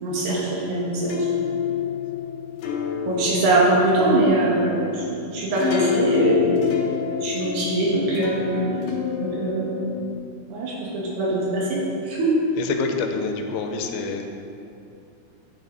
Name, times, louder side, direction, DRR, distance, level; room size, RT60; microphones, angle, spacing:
voice 1, 0.0-1.4 3.1-6.6 6.9-8.7 9.2-9.8 10.5-11.8 12.1-12.3, right 2 dB, 90° right, -5 dB, 3.8 m, -22 dB
sound 1, 1.0-10.1, left 7 dB, 70° left, 2.2 m, -27 dB
voice 2, 12.6-14.3, left 5 dB, 90° left, 4 dB, 2.6 m, -27 dB
9.4 x 7.3 x 4.0 m, 2.6 s
omnidirectional pair, 4.5 m